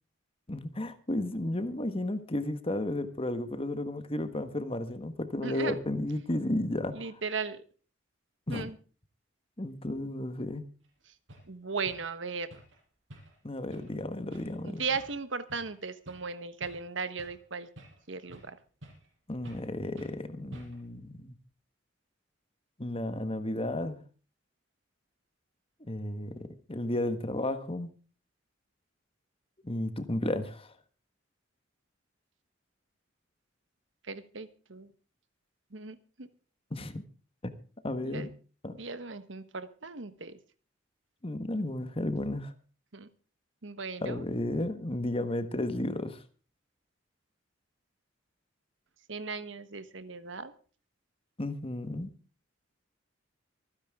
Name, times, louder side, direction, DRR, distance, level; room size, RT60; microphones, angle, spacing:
voice 1, 0.5-7.0 8.5-8.7 9.6-10.7 13.4-14.8 19.3-21.3 22.8-24.0 25.8-27.9 29.6-30.7 36.7-37.0 37.8-38.3 38.6-38.8 41.2-42.5 44.0-46.2 51.4-52.1, left 1 dB, 30° left, 10 dB, 1.4 m, -33 dB
voice 2, 5.4-5.8 6.9-7.6 8.5-8.7 11.5-12.5 14.6-17.7 18.1-18.6 34.0-34.9 35.7-36.3 38.0-38.3 38.7-40.4 42.9-43.1 43.6-44.2 49.1-50.5, right 4 dB, 70° right, 13 dB, 1.2 m, -37 dB
sound 1, 10.8-10.9 11.3-11.5 11.9-12.1 12.5-12.8 13.1-13.4 13.7-13.9 14.3-14.6 14.9-15.2 15.5-15.8 16.1-16.3 16.6-17.4 17.8-18.5 18.8-19.1 19.4-19.7 20.0-20.2 20.5-20.9, right 1 dB, 90° right, 5.9 m, -51 dB
25.0 x 9.8 x 3.6 m, 0.37 s
head